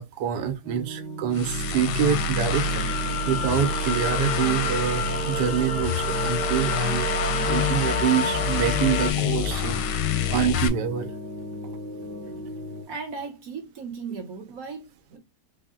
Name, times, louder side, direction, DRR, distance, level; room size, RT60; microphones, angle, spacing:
voice 1, 0.0-2.9 3.3-10.0 10.3-11.1, right 9 dB, 80° right, 1.3 m, -26 dB
sound 1, 0.6-12.8, equal, 15° right, 0.5 m, -37 dB
sound 2, 1.3-10.7, left 4 dB, 85° left, 1.2 m, -27 dB
sound 3, 2.5-9.1, left 3 dB, 55° left, 0.5 m, -30 dB
voice 2, 12.9-15.2, right 5 dB, 60° right, 1.3 m, -36 dB
4.1 x 2.0 x 3.6 m
omnidirectional pair, 1.8 m